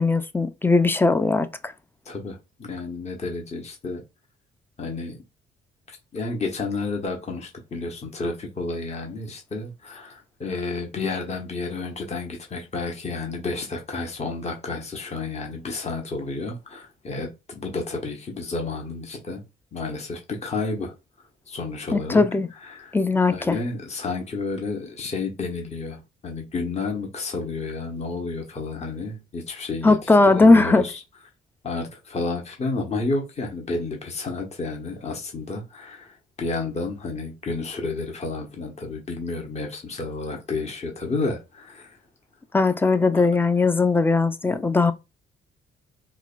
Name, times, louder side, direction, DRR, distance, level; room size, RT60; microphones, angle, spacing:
voice 1, 0.0-1.7 21.9-22.5 22.9-23.6 29.8-30.8 42.5-44.9, left 3 dB, 10° left, 0.4 m, -19 dB
voice 2, 2.0-4.0 4.8-5.2 5.9-19.4 19.7-20.9 21.5-22.2 22.6-22.9 23.3-31.0 31.6-42.0 43.1-43.3 44.4-44.8, left 3 dB, 35° left, 1.0 m, -31 dB
4.8 x 2.2 x 2.5 m
cardioid pair, 90°, 20 cm